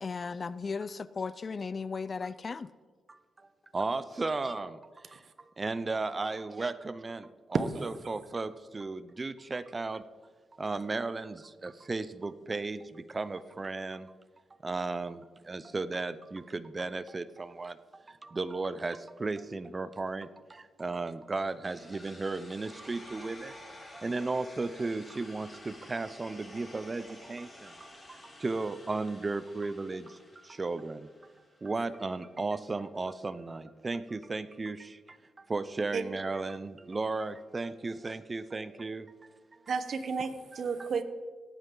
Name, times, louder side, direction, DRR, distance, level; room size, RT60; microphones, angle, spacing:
voice 1, 0.0-2.7, left 4 dB, 40° left, 0.4 m, -36 dB
voice 2, 3.7-5.2 5.6-10.0 10.6-14.1 14.6-23.5 23.9-31.1 31.6-39.1, right 3 dB, 30° right, 0.5 m, -35 dB
sound 1, 21.6-31.6, left 1 dB, 20° left, 3.7 m, -51 dB
voice 3, 39.7-41.0, right 5 dB, 55° right, 1.0 m, -33 dB
17.5 x 9.0 x 3.8 m
cardioid pair, 90°, 0 cm